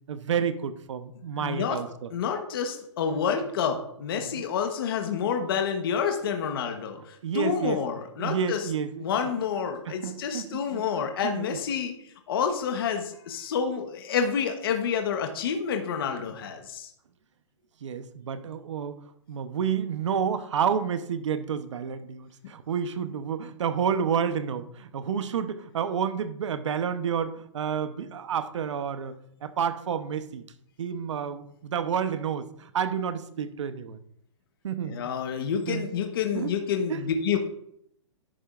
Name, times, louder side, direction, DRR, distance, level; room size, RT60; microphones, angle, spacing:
voice 1, 0.1-2.1 4.2-4.4 7.2-7.8 8.2-9.4 9.9-10.8 11.2-11.6 17.8-19.0 19.3-30.4 30.8-34.0 34.6-35.1 35.7-35.9 36.3-36.5 36.9-37.0, right 7 dB, 70° right, 11 dB, 0.9 m, -30 dB
voice 2, 1.4-1.8 2.1-8.6 9.0-11.9 12.3-16.9 34.8-37.4, left 7 dB, 50° left, 5 dB, 1.1 m, -28 dB
11.0 x 8.4 x 2.5 m, 0.72 s
hypercardioid pair, 170°, 16 cm